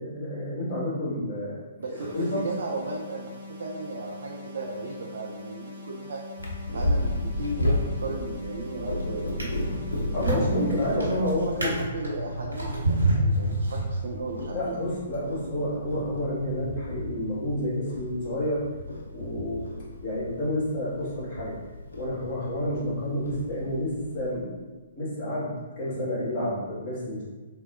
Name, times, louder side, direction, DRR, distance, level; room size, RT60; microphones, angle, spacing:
voice 1, 0.0-1.6 1.9-2.4 10.1-11.7 14.5-18.6 19.1-19.7 20.0-21.5 22.0-24.6 24.9-27.3, left 1 dB, 30° left, -10 dB, 1.5 m, -29 dB
voice 2, 1.8-6.2 6.7-9.7 11.0-14.7, right 3 dB, 60° right, -1 dB, 0.3 m, -35 dB
sound 1, 2.0-11.0, left 2 dB, 40° right, 0.7 m, -43 dB
Purr, 6.4-24.3, left 1 dB, 75° left, 0.5 m, -34 dB
Drawer open or close, 8.2-8.6 9.2-14.4 15.1-15.2, right 1 dB, 85° right, 1.0 m, -28 dB
3.4 x 2.2 x 2.5 m, 1.3 s
figure-of-eight pair, 125°, 0 cm